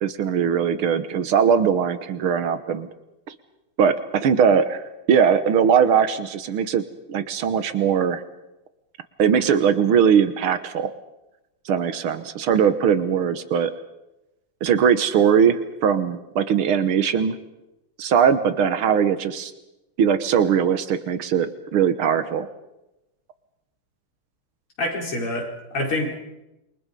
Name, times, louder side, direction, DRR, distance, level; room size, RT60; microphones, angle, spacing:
voice 1, 0.0-2.9 3.3-3.4 3.8-4.8 5.1-8.2 9.2-10.9 11.7-13.7 14.6-17.4 18.0-19.5 20.0-22.5, right 7 dB, 75° right, 11 dB, 2.1 m, -20 dB
voice 2, 24.8-26.2, left 1 dB, 90° left, -1 dB, 5.9 m, -26 dB
27.5 x 23.5 x 5.4 m, 0.95 s
omnidirectional pair, 2.4 m